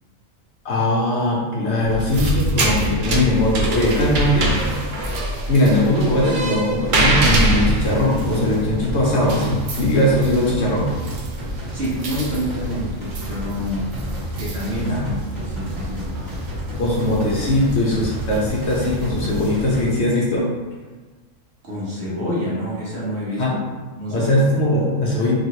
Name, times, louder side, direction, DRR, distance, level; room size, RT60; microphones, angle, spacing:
voice 1, 0.6-4.5 5.5-10.9 14.9-15.1 16.8-20.5 23.4-23.6 24.1-25.3, left 1 dB, 65° left, -4 dB, 0.8 m, -20 dB
sound 1, 1.8-20.0, right 1 dB, 85° right, 0.4 m, -26 dB
sound 2, 6.8-19.8, right 1 dB, 15° right, 1.4 m, -31 dB
voice 2, 11.7-13.9 14.4-16.2 21.6-23.6 23.9-24.5, equal, 55° right, -6 dB, 1.0 m, -28 dB
3.0 x 2.5 x 2.8 m, 1.3 s
omnidirectional pair, 1.4 m